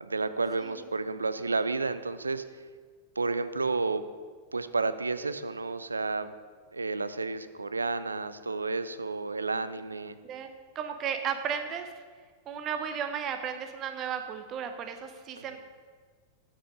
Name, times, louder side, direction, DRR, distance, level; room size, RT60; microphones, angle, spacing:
voice 1, 0.0-2.4 3.2-4.0 4.5-6.3 6.7-10.2 15.4-15.6, right 3 dB, 80° right, 13 dB, 0.4 m, -31 dB
voice 2, 10.7-11.9 12.5-15.6, right 7 dB, 30° right, 7 dB, 0.7 m, -34 dB
7.6 x 7.4 x 5.0 m, 1.5 s
figure-of-eight pair, 90°, 0 cm